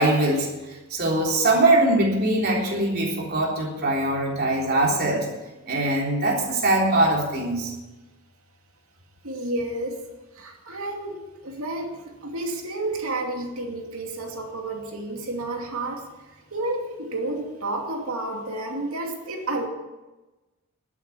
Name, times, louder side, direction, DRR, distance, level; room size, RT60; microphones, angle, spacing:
voice 1, 0.0-5.3 5.7-7.7, right 2 dB, 45° right, -2 dB, 3.5 m, -22 dB
voice 2, 9.2-10.0 10.3-16.0 16.5-19.7, right 2 dB, 75° right, 2 dB, 2.7 m, -31 dB
12.5 x 8.4 x 8.6 m, 1.1 s
head